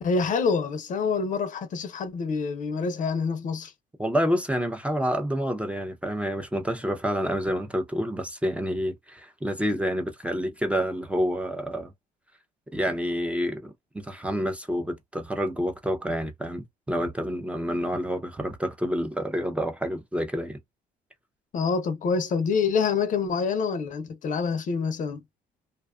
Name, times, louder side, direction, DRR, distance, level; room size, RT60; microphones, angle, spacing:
voice 1, 0.0-3.7 21.5-25.2, left 5 dB, 50° left, 0.6 m, -26 dB
voice 2, 4.0-11.9 12.7-20.6, equal, 5° right, 0.5 m, -28 dB
2.5 x 2.2 x 2.3 m
cardioid pair, 110°, 17 cm